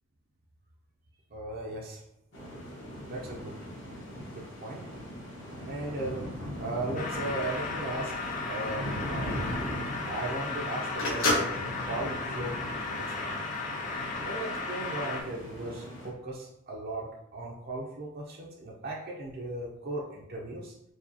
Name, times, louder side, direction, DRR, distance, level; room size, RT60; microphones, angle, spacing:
voice 1, 1.3-2.0 3.1-3.6 4.0-4.9 5.6-6.2 6.6-9.4 10.0-11.5 11.8-12.6 12.9-13.5 14.2-20.7, right 2 dB, 45° right, -2 dB, 0.5 m, -37 dB
sound 1, 2.3-16.1, equal, 65° left, 1.2 m, -39 dB
sound 2, 6.9-15.2, left 3 dB, 35° left, 0.5 m, -35 dB
Telephone, 8.1-13.3, left 1 dB, 80° left, 1.4 m, -32 dB
4.6 x 2.3 x 2.7 m, 0.79 s
head